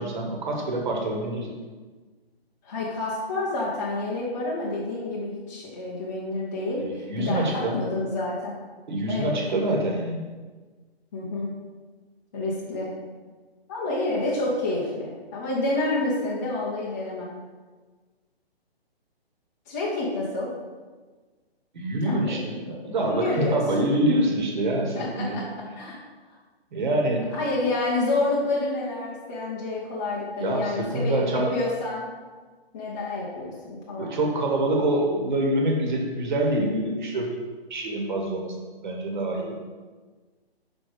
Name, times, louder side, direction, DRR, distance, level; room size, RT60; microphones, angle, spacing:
voice 1, 0.0-1.5 6.8-7.8 8.9-10.2 21.7-25.4 26.7-27.3 30.4-31.5 34.0-37.3 37.7-39.6, right 1 dB, 45° right, 0 dB, 1.6 m, -26 dB
voice 2, 2.6-6.8 7.2-8.6 9.1-9.3 11.1-11.5 12.3-12.9 13.7-17.3 19.7-20.5 22.0-23.6 25.0-25.5 25.8-26.0 27.3-32.0 32.7-34.2, left 2 dB, 15° left, -6 dB, 0.7 m, -29 dB
5.5 x 4.9 x 5.1 m, 1.4 s
hypercardioid pair, 160°, 31 cm